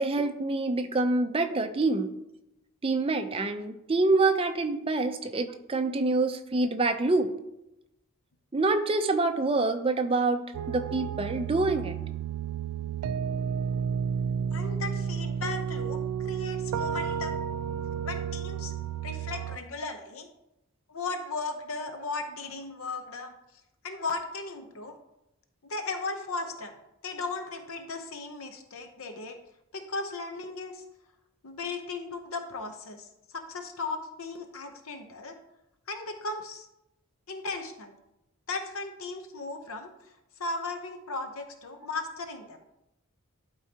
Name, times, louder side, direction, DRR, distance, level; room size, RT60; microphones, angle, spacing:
voice 1, 0.0-2.1 2.8-7.3 8.5-10.4 10.7-11.9, right 3 dB, 25° right, 7 dB, 0.5 m, -26 dB
sound 1, 10.5-19.6, right 7 dB, 90° right, 0.3 m, -32 dB
voice 2, 14.5-17.4 18.0-18.7 19.0-20.3 20.9-23.4 23.8-25.0 25.6-26.7 27.0-29.4 29.7-30.8 31.4-35.4 35.9-36.7 37.3-38.0 38.5-40.1 40.4-42.6, left 3 dB, 70° left, 6 dB, 0.7 m, -36 dB
11.5 x 4.7 x 2.8 m, 0.88 s
head